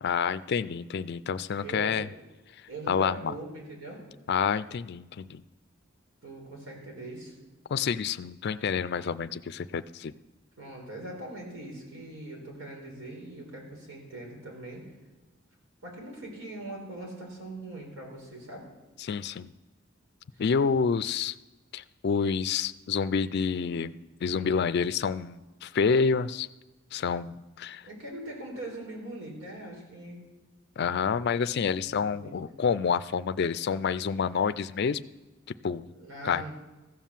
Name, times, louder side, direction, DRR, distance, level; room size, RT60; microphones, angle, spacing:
voice 1, 0.0-2.1 2.9-3.3 4.3-5.4 7.7-10.1 19.0-19.5 20.4-21.4 21.7-23.9 24.2-26.5 26.9-27.8 30.8-35.1 35.6-35.9 36.2-36.5, left 6 dB, 55° left, 14 dB, 0.4 m, -28 dB
voice 2, 1.6-2.1 2.7-4.0 6.2-7.3 10.6-14.8 15.8-18.7 20.3-20.4 27.8-30.2 31.8-32.6 35.9-36.5, right 1 dB, 90° right, -1 dB, 4.7 m, -41 dB
15.0 x 9.2 x 7.3 m, 1.1 s
head